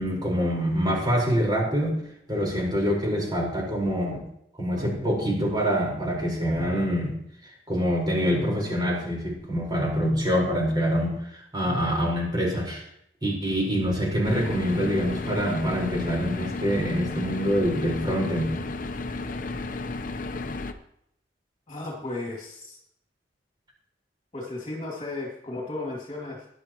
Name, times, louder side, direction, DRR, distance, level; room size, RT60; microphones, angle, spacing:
voice 1, 0.0-2.0 2.3-4.2 4.6-7.2 7.7-12.8 13.2-18.7, equal, 25° right, -2 dB, 4.8 m, -25 dB
sound 1, 4.8-5.4 6.6-7.2 8.2-8.8 10.0-10.6 11.6-12.0, equal, 60° right, 5.1 m, -38 dB
sound 2, 14.2-20.7, left 3 dB, 50° left, 0.9 m, -33 dB
voice 2, 21.7-22.8 24.3-26.5, left 2 dB, 30° left, -2 dB, 2.6 m, -34 dB
19.5 x 10.5 x 3.1 m, 0.73 s
head